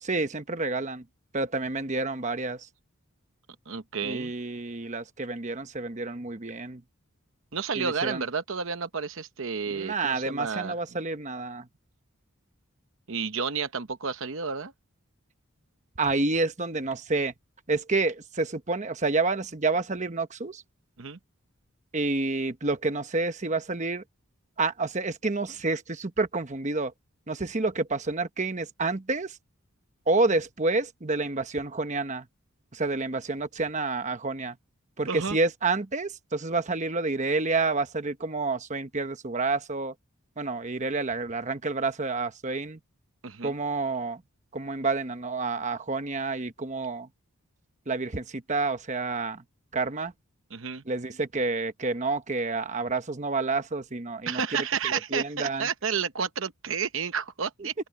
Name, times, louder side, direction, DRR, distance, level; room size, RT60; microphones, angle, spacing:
voice 1, 0.0-1.0 1.3-2.6 4.0-6.8 7.8-8.2 9.7-11.6 16.0-17.3 17.7-20.6 21.9-24.0 24.6-26.9 27.3-29.3 30.1-32.2 32.7-34.5 35.0-39.9 40.4-42.8 43.4-44.2 44.5-47.1 47.9-49.4 49.7-50.1 50.9-54.4 55.1-55.7, right 3 dB, 35° right, 1.0 m, -29 dB
voice 2, 3.7-4.3 7.5-10.8 13.1-14.7 21.0-21.2 35.1-35.4 43.2-43.5 50.5-50.8 54.3-57.7, right 6 dB, 60° right, 0.9 m, -31 dB
open air
head